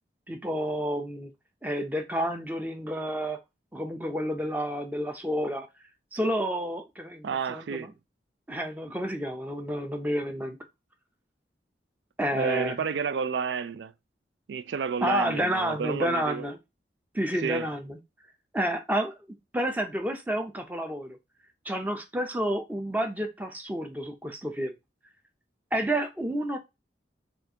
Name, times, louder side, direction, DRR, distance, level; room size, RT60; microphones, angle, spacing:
voice 1, 0.3-1.3 1.6-3.4 3.7-5.7 6.1-7.9 8.5-10.6 12.2-12.7 15.0-16.6 17.1-18.0 18.5-19.1 19.5-21.2 21.6-24.7 25.7-26.6, equal, 10° right, 0.6 m, -30 dB
voice 2, 7.2-7.9 12.3-13.9 14.5-16.5 17.3-17.7, right 6 dB, 85° right, 0.4 m, -31 dB
4.4 x 2.4 x 2.7 m
head